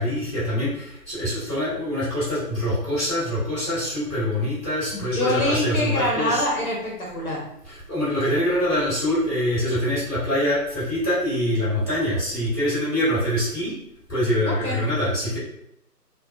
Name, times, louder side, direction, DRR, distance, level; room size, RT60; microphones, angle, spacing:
voice 1, 0.0-6.4 7.6-13.7 14.1-15.4, left 1 dB, 5° left, -23 dB, 1.4 m, -24 dB
voice 2, 4.9-7.4 14.5-14.8, left 1 dB, 60° left, -3 dB, 0.8 m, -25 dB
2.6 x 2.2 x 2.3 m, 0.77 s
figure-of-eight pair, 170°, 48 cm